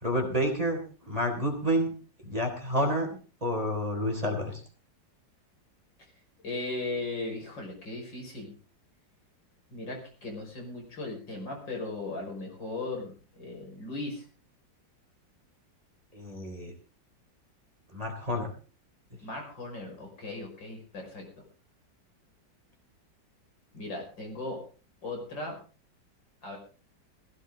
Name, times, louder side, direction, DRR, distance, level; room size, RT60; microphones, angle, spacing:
voice 1, 0.0-1.9 2.2-4.6 16.1-16.7 17.9-18.5, equal, 20° right, 3 dB, 3.6 m, -29 dB
voice 2, 6.4-8.5 9.7-14.2 19.2-21.3 23.7-24.6 25.0-25.6 26.4-26.6, left 2 dB, 80° left, 1 dB, 6.4 m, -37 dB
16.5 x 16.0 x 3.9 m, 0.37 s
omnidirectional pair, 2.0 m